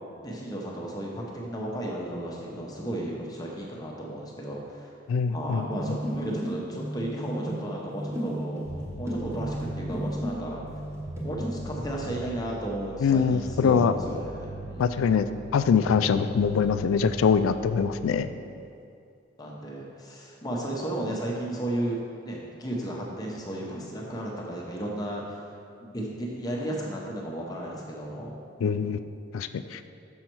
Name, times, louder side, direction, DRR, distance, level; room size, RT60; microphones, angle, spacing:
voice 1, 0.2-4.9 5.3-8.6 9.0-10.8 11.2-15.1 19.4-22.0 22.2-25.5 25.8-28.3 28.7-28.8, right 1 dB, 20° left, -2 dB, 0.7 m, -34 dB
voice 2, 5.1-5.6 13.0-13.9 14.8-15.3 15.5-18.3 28.6-29.0 29.3-29.8, left 6 dB, 75° left, 11 dB, 0.3 m, -23 dB
sound 1, 5.7-10.4 10.7-11.5, right 1 dB, 15° right, 0.9 m, -34 dB
Bass guitar, 8.6-18.2, right 1 dB, 45° right, 1.3 m, -40 dB
6.3 x 5.6 x 4.5 m, 2.5 s
head